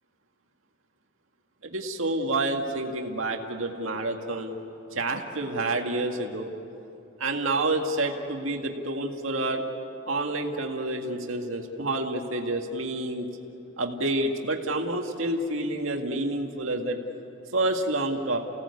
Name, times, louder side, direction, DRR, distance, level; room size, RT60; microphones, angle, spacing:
voice 1, 1.6-4.6 4.9-6.5 7.2-9.7 10.1-13.3 13.8-17.0 17.5-18.4, right 2 dB, 75° right, 3 dB, 2.1 m, -28 dB
29.5 x 17.5 x 8.5 m, 2.8 s
head